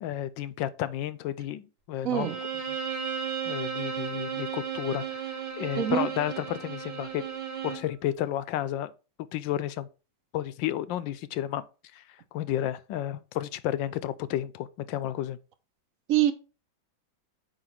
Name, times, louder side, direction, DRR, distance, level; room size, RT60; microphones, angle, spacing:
voice 1, 0.0-2.3 3.4-7.2 7.6-8.9 9.3-9.9 10.3-11.6 11.9-12.0 12.3-15.4, left 12 dB, 80° left, 1.3 m, -32 dB
voice 2, 2.0-2.4 5.8-6.1 16.1-16.3, right 11 dB, 55° right, 1.0 m, -24 dB
Bowed string instrument, 2.1-7.9, right 8 dB, 80° right, 2.8 m, -34 dB
8.9 x 3.0 x 5.7 m
omnidirectional pair, 2.1 m